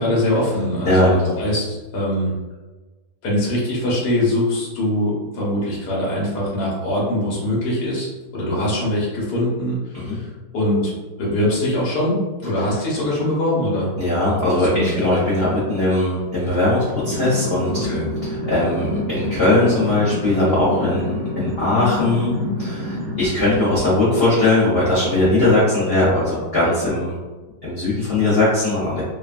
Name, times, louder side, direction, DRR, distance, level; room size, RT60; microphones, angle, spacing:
voice 1, 0.0-2.3 3.2-10.9 11.2-13.9 14.7-15.2 17.8-18.1, left 1 dB, 75° left, -6 dB, 1.5 m, -22 dB
voice 2, 0.8-1.4 9.9-10.2 14.0-17.9 18.2-22.3 22.6-27.2 27.6-29.0, left 2 dB, 50° left, -9 dB, 0.8 m, -19 dB
sound 1, 17.0-23.3, left 1 dB, 75° right, 1.3 m, -27 dB
3.2 x 2.2 x 2.4 m, 1.2 s
omnidirectional pair, 1.8 m